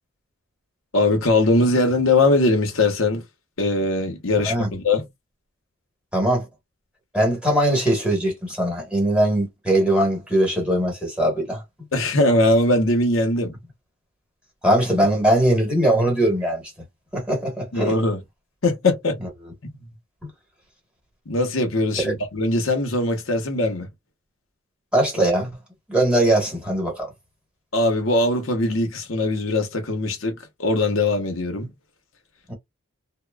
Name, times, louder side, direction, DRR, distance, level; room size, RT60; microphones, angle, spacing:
voice 1, 0.9-3.2 3.6-5.1 11.9-13.5 17.7-18.2 18.6-19.2 19.6-19.8 21.3-23.9 27.7-30.3 30.6-31.7, left 2 dB, 70° left, 0.8 m, -21 dB
voice 2, 6.1-6.5 7.1-11.6 14.6-16.6 17.1-17.9 19.2-19.5 22.0-22.1 24.9-25.5 25.9-27.1 32.5-32.6, right 1 dB, 5° right, 1.1 m, -21 dB
2.8 x 2.0 x 2.2 m
head